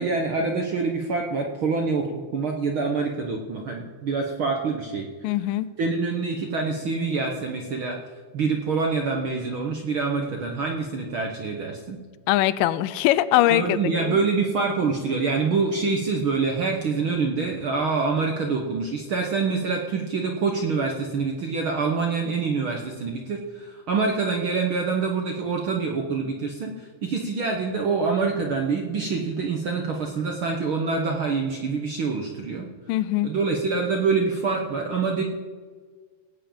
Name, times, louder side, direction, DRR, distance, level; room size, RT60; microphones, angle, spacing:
voice 1, 0.0-5.1 5.8-8.0 8.3-12.0 13.5-32.7 33.2-35.2, right 4 dB, 65° right, 2 dB, 1.3 m, -26 dB
voice 2, 5.2-5.7 12.3-14.2 32.9-33.3, left 14 dB, 90° left, 17 dB, 2.2 m, -22 dB
17.5 x 5.8 x 8.7 m, 1.5 s
omnidirectional pair, 3.8 m